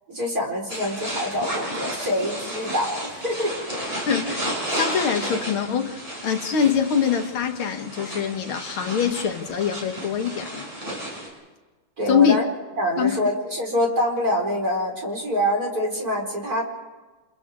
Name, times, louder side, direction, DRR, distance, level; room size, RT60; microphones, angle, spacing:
voice 1, 0.1-3.5 12.0-12.5 12.8-16.6, equal, 45° right, -1 dB, 5.1 m, -25 dB
sound 1, 0.7-11.3, equal, 15° right, 7.8 m, -32 dB
voice 2, 4.1-10.6 12.1-12.4 13.0-13.2, left 7 dB, 80° left, 6 dB, 2.3 m, -24 dB
30.0 x 28.5 x 3.7 m, 1.3 s
omnidirectional pair, 2.3 m